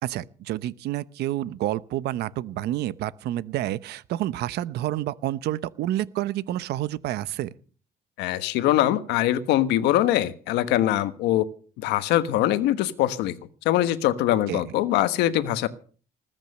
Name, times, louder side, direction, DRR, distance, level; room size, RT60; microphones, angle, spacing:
voice 1, 0.0-7.5 14.5-14.7, right 14 dB, 75° right, 0.9 m, -29 dB
voice 2, 8.2-11.5 11.8-13.4 13.6-15.7, left 13 dB, 90° left, 1.3 m, -23 dB
20.0 x 9.0 x 6.6 m
cardioid pair, 110°, 17 cm